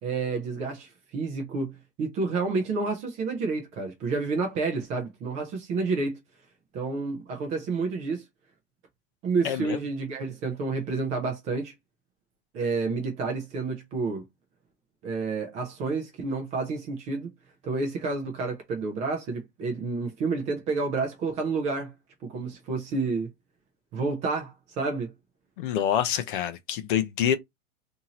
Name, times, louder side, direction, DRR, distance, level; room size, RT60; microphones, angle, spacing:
voice 1, 0.0-6.2 6.7-8.2 9.2-11.7 12.5-14.2 15.0-17.3 17.6-21.9 22.2-23.3 23.9-25.1, right 4 dB, 15° right, 0.4 m, -29 dB
voice 2, 9.4-9.8 25.6-27.4, left 10 dB, 40° left, 0.5 m, -26 dB
2.7 x 2.7 x 2.8 m
hypercardioid pair, 130°, 42 cm